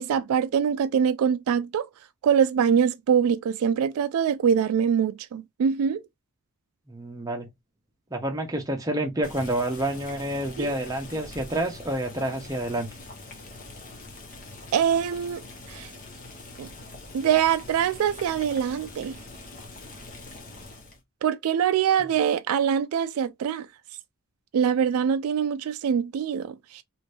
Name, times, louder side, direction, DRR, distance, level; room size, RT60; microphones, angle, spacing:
voice 1, 0.0-1.9 2.2-6.0 10.6-10.7 14.7-15.4 15.7-15.9 16.6-16.7 17.1-19.2 21.2-23.7 24.5-26.8, right 8 dB, 75° right, 0.3 m, -24 dB
voice 2, 6.9-7.5 8.1-12.9, right 1 dB, 15° right, 0.8 m, -28 dB
Boiling, 9.2-21.0, left 2 dB, 40° left, 0.9 m, -43 dB
2.8 x 2.6 x 3.2 m
head